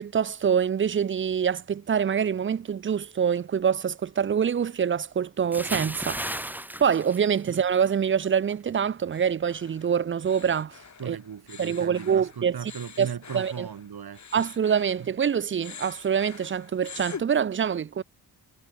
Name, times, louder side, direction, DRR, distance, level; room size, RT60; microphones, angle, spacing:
voice 1, 0.0-6.2 6.8-10.8 11.1-11.2 11.6-12.6 13.0-13.1 13.3-13.7 14.3-18.0, right 7 dB, 35° right, 0.4 m, -25 dB
Bathtub (filling or washing) / Splash splatter, 5.5-7.9 8.2-8.5, right 1 dB, 5° right, 1.9 m, -34 dB
sound 1, 9.1-15.3 15.6-17.2, left 6 dB, 45° left, 2.3 m, -45 dB
voice 2, 11.0-14.4 15.0-15.1, right 7 dB, 70° right, 5.9 m, -38 dB
wide cardioid pair, 170°, 39 cm